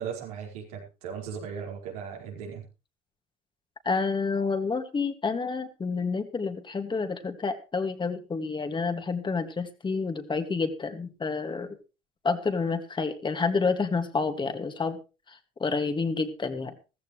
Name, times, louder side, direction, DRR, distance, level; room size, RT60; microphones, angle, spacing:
voice 1, 0.0-2.6, right 7 dB, 90° right, 0 dB, 4.9 m, -37 dB
voice 2, 3.8-11.8 12.2-15.0 15.3-16.8, left 4 dB, 25° left, 8 dB, 2.1 m, -29 dB
15.0 x 14.0 x 3.2 m, 0.30 s
supercardioid pair, 85°, 19 cm